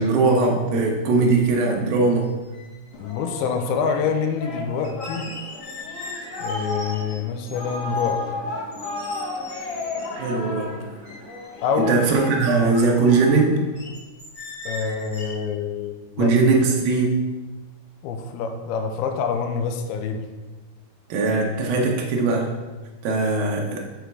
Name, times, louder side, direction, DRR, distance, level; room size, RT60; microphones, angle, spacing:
voice 1, 0.0-2.3 10.1-10.7 11.9-13.6 16.2-17.2 21.1-22.5 23.0-23.8, right 3 dB, 75° right, 0 dB, 2.3 m, -20 dB
sound 1, 2.2-2.3 2.5-3.5 4.8-8.1 8.7-10.2 10.7-10.8 11.0-12.1 13.7-15.3, left 2 dB, 35° left, 1.6 m, -40 dB
Singing, 2.9-13.9, left 3 dB, 65° left, 1.5 m, -33 dB
voice 2, 3.0-5.3 6.4-8.2 11.6-12.0 14.7-16.3 18.0-20.2, left 6 dB, 85° left, 5 dB, 2.2 m, -26 dB
6.9 x 4.9 x 4.6 m, 1.2 s
omnidirectional pair, 4.9 m